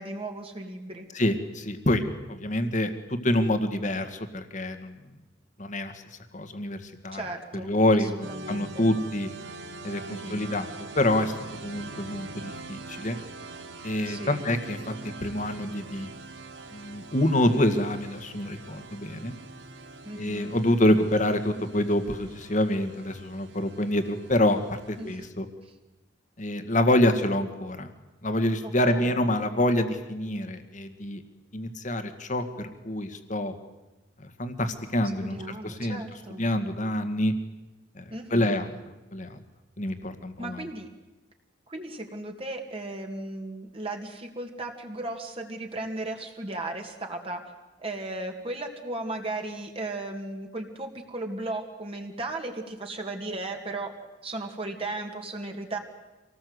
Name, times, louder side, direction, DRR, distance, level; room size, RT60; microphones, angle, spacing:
voice 1, 0.0-1.1 7.1-7.7 8.0-8.9 10.0-10.5 14.1-14.4 20.0-20.5 25.0-25.3 25.6-25.7 28.6-29.2 35.2-36.4 38.1-38.7 40.4-40.9 41.7-47.4 47.8-54.0 54.2-55.8, right 2 dB, 30° right, 3 dB, 2.3 m, -36 dB
voice 2, 1.1-2.0 2.3-5.0 5.6-5.9 6.3-7.2 7.6-9.3 9.8-11.3 11.6-13.2 13.8-16.1 16.7-19.3 20.1-24.6 24.9-25.5 26.4-27.9 28.2-31.2 31.5-33.5 34.2-36.0 36.4-37.3 38.0-38.1 38.3-38.8 39.1-39.4 39.8-40.6, left 1 dB, 40° left, 8 dB, 1.9 m, -26 dB
sound 1, 8.2-25.1, right 3 dB, 70° right, 1.7 m, -44 dB
26.0 x 19.0 x 8.0 m, 1.1 s
head